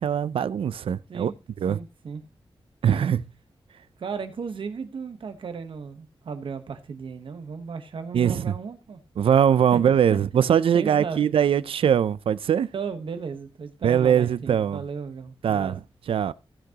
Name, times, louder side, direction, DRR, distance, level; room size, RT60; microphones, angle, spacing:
voice 1, 0.0-1.3 1.6-1.8 2.8-3.2 8.1-8.5 9.2-12.7 13.8-14.8 15.4-15.8 16.1-16.3, right 8 dB, 90° right, 0.4 m, -21 dB
voice 2, 1.7-2.2 4.0-9.0 9.7-9.8 10.1-10.2 10.7-11.2 12.7-15.8, right 5 dB, 70° right, 1.1 m, -35 dB
16.0 x 6.0 x 2.9 m
wide cardioid pair, 140°, 9 cm